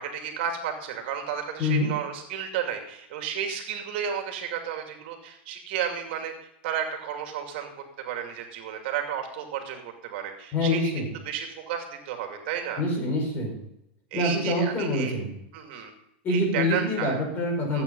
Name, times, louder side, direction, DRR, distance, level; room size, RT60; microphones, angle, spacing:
voice 1, 0.0-6.3 6.6-10.9 11.3-12.8 14.1-15.1 15.5-15.9 16.3-17.2 17.7-17.8, right 8 dB, 60° right, 4 dB, 2.5 m, -32 dB
voice 2, 10.5-11.1 12.8-13.5 14.1-15.3 16.2-17.8, left 1 dB, 30° left, 1 dB, 5.3 m, -25 dB
14.5 x 8.7 x 5.4 m, 0.81 s
supercardioid pair, 140°, 6 cm